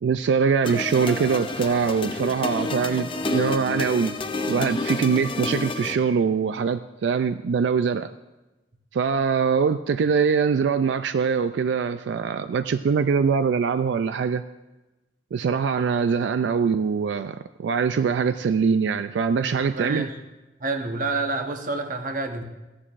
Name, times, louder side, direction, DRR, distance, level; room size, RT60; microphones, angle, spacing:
voice 1, 0.0-4.2 4.5-8.1 8.9-14.4 15.3-20.1, right 6 dB, 90° right, 11 dB, 0.3 m, -23 dB
sound 1, 0.6-5.9, left 3 dB, 30° left, 0.6 m, -29 dB
voice 2, 19.4-20.2 20.6-22.4, right 3 dB, 50° right, 5 dB, 1.0 m, -28 dB
14.5 x 11.0 x 2.5 m, 1.1 s
head